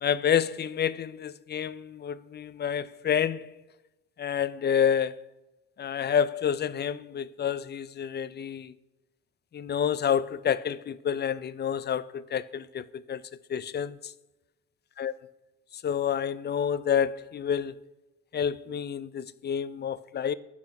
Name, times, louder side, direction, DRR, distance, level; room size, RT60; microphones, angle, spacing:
voice 1, 0.0-3.5 4.2-5.2 5.8-8.7 9.5-13.2 13.5-14.0 15.0-15.1 15.8-17.7 18.3-20.3, left 8 dB, 35° left, 0.4 m, -28 dB
11.5 x 4.2 x 5.8 m
cardioid pair, 90°, 30 cm